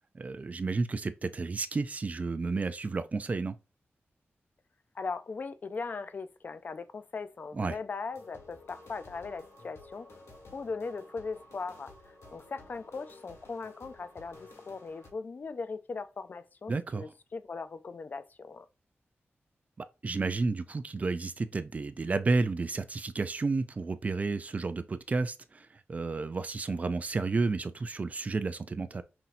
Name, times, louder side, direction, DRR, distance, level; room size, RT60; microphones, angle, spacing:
voice 1, 0.1-3.6 7.5-7.8 16.7-17.1 19.8-29.0, right 3 dB, 35° right, 0.4 m, -31 dB
voice 2, 5.0-10.1 10.5-11.9 12.3-18.7, left 4 dB, 40° left, 0.4 m, -39 dB
sound 1, 8.1-15.1, left 2 dB, 90° left, 1.5 m, -53 dB
5.7 x 2.7 x 2.5 m
wide cardioid pair, 160°, 4 cm